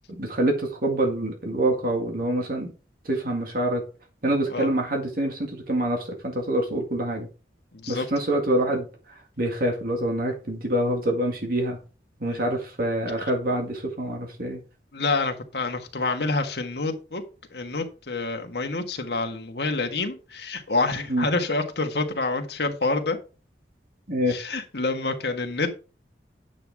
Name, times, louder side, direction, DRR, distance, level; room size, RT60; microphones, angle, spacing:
voice 1, 0.2-2.7 3.1-3.8 4.2-7.3 7.9-8.9 9.4-11.8 12.2-14.6 21.1-21.3 24.1-24.3, right 1 dB, 55° right, 2 dB, 2.0 m, -26 dB
voice 2, 7.7-8.1 12.2-12.5 13.2-13.3 14.9-17.2 17.5-23.2 24.3-25.7, left 3 dB, 65° left, 4 dB, 1.7 m, -27 dB
9.3 x 7.9 x 3.6 m, 0.34 s
head